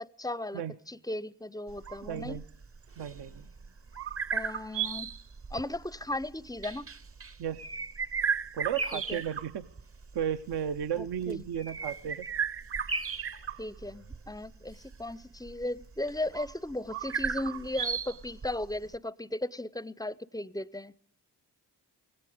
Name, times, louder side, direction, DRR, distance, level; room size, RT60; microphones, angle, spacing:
voice 1, 0.0-2.4 4.3-5.1 5.5-6.9 8.9-9.2 11.0-11.5 13.6-20.9, left 1 dB, 10° left, 0.5 m, -36 dB
sound 1, 1.7-19.0, right 6 dB, 35° right, 0.8 m, -35 dB
voice 2, 2.1-2.4 3.0-3.5 7.4-7.7 8.5-9.7 10.1-12.3, right 9 dB, 65° right, 0.7 m, -34 dB
17.5 x 16.0 x 5.0 m
supercardioid pair, 45°, 42 cm